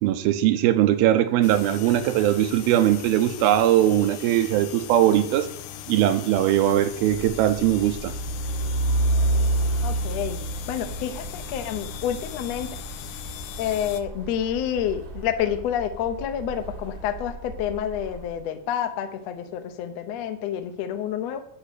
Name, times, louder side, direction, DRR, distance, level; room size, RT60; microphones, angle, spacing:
voice 1, 0.0-5.5 5.9-8.1, right 12 dB, 85° right, 2.7 m, -20 dB
sound 1, 1.4-14.0, left 12 dB, 90° left, 2.7 m, -39 dB
Truck, 6.9-18.3, right 2 dB, 55° right, 1.0 m, -30 dB
voice 2, 9.8-10.4 10.7-12.7 13.6-21.4, left 9 dB, 75° left, 1.5 m, -28 dB
10.5 x 5.1 x 8.4 m
omnidirectional pair, 4.2 m